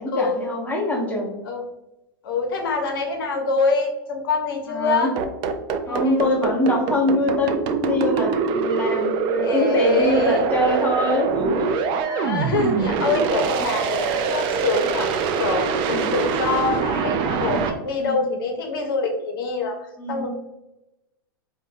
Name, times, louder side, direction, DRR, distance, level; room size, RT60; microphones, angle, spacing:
voice 1, 0.0-1.4 4.7-5.1 5.9-11.8 15.9-16.2 17.9-18.2 20.0-20.3, left 1 dB, 10° left, -2 dB, 0.8 m, -24 dB
voice 2, 2.2-5.1 5.8-6.2 6.7-6.8 9.4-10.5 12.0-19.8 20.1-20.3, left 3 dB, 70° left, 3 dB, 0.7 m, -25 dB
sound 1, 5.2-17.7, right 5 dB, 40° right, 0.4 m, -24 dB
3.6 x 2.2 x 2.6 m, 0.93 s
hypercardioid pair, 110°, 12 cm